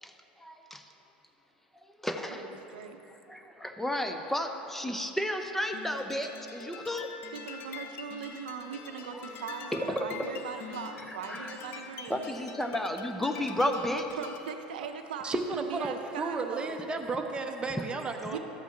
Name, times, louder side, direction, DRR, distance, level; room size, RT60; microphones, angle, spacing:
voice 1, 0.4-0.8 2.0-2.9 3.3-7.1 9.1-9.2 9.7-10.4 11.1-11.5 12.1-14.1, left 1 dB, 5° left, 5 dB, 0.6 m, -33 dB
voice 2, 2.2-3.0 7.3-12.3 14.2-16.9 18.3-18.4, right 6 dB, 75° right, 6 dB, 0.6 m, -40 dB
sound 1, 5.7-14.6, left 7 dB, 45° left, 0.6 m, -45 dB
voice 3, 15.2-18.4, right 3 dB, 20° right, 4 dB, 0.8 m, -33 dB
12.5 x 8.1 x 3.3 m, 3.0 s
hypercardioid pair, 80°, 5 cm